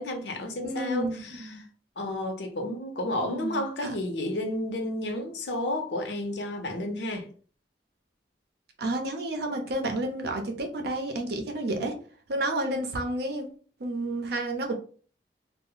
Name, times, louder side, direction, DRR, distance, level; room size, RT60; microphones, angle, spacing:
voice 1, 0.0-1.7 2.0-7.3, left 1 dB, 75° left, 0.6 m, -32 dB
voice 2, 0.6-1.7 3.2-3.9 8.8-11.9 12.3-13.5 13.8-14.7, right 1 dB, 65° right, 0.6 m, -31 dB
2.0 x 2.0 x 3.7 m
head